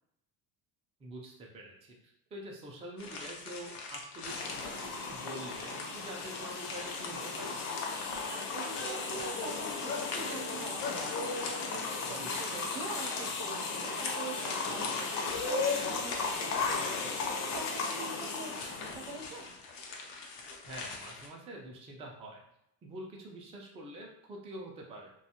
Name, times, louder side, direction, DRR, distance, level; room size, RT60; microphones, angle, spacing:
voice 1, 1.0-7.6 12.0-12.5 20.7-22.4 22.8-25.1, right 1 dB, 15° right, -1 dB, 0.3 m, -46 dB
sound 1, 3.0-21.3, left 4 dB, 90° left, 0.7 m, -44 dB
sound 2, 4.3-19.4, left 4 dB, 50° left, 0.6 m, -36 dB
voice 2, 8.3-17.0 17.4-19.5, right 4 dB, 75° right, 2 dB, 0.7 m, -45 dB
2.4 x 2.3 x 2.8 m, 0.80 s
cardioid pair, 120°, 43 cm